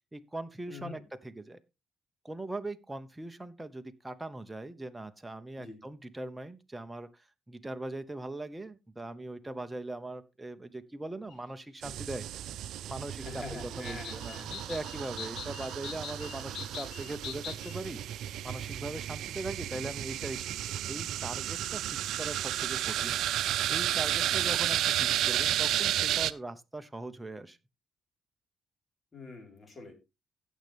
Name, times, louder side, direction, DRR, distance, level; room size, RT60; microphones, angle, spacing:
voice 1, 0.1-1.6 2.2-12.3 12.9-18.0 18.4-20.6 20.9-23.2 23.7-27.6, right 2 dB, 10° right, 8 dB, 0.9 m, -40 dB
voice 2, 0.7-1.0 5.6-5.8 13.2-14.6 24.3-24.5 29.1-29.9, left 3 dB, 35° left, 4 dB, 4.3 m, -45 dB
sound 1, 11.3-11.4 13.8-17.8, left 8 dB, 80° left, 1.3 m, -44 dB
sound 2, 11.8-26.3, right 12 dB, 80° right, 0.5 m, -32 dB
15.5 x 6.7 x 3.4 m, 0.25 s
cardioid pair, 90°, 0 cm